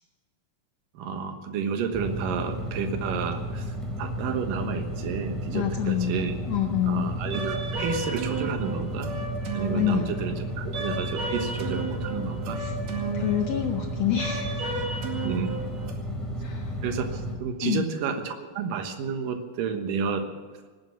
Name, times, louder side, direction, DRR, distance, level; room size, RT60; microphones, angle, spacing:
voice 1, 0.9-6.3 6.9-9.1 9.5-12.6 15.2-15.6 16.8-20.3, right 6 dB, 75° right, 6 dB, 2.9 m, -31 dB
sound 1, 1.9-17.3, equal, ahead, 3.1 m, -33 dB
voice 2, 5.5-7.1 9.7-10.1 12.6-12.7 13.1-14.6 16.4-16.8 17.6-17.9, left 10 dB, 85° left, 4 dB, 1.4 m, -27 dB
sound 2, 7.3-15.9, right 3 dB, 55° right, 3.1 m, -34 dB
18.5 x 9.5 x 7.1 m, 1.4 s
omnidirectional pair, 4.1 m